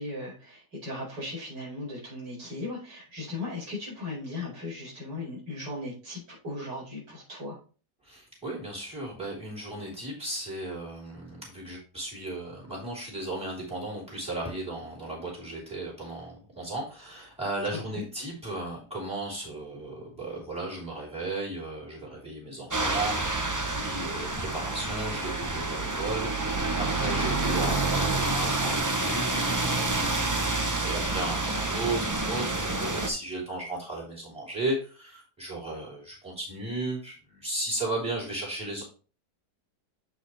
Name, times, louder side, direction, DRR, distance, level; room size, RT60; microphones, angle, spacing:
voice 1, 0.0-7.6 17.9-18.0, left 2 dB, 85° right, -6 dB, 5.4 m, -37 dB
voice 2, 8.0-30.0 30.8-38.8, right 2 dB, 5° right, -6 dB, 3.7 m, -35 dB
sound 1, 22.7-33.1, right 2 dB, 20° right, 0.4 m, -28 dB
8.0 x 6.3 x 3.3 m, 0.37 s
omnidirectional pair, 1.8 m